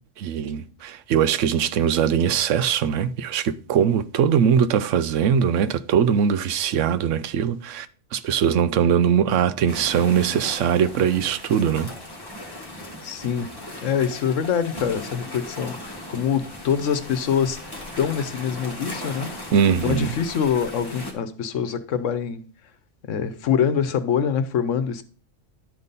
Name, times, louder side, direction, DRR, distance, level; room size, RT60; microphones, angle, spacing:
voice 1, 0.2-11.9 19.5-20.1, right 8 dB, 80° right, 0.9 m, -21 dB
sound 1, 9.7-21.1, left 1 dB, 20° left, 1.6 m, -38 dB
voice 2, 13.0-13.5 13.8-17.6 18.0-19.3 19.8-22.4 23.1-25.0, left 7 dB, 85° left, 1.1 m, -24 dB
11.0 x 4.1 x 5.2 m
omnidirectional pair, 1.3 m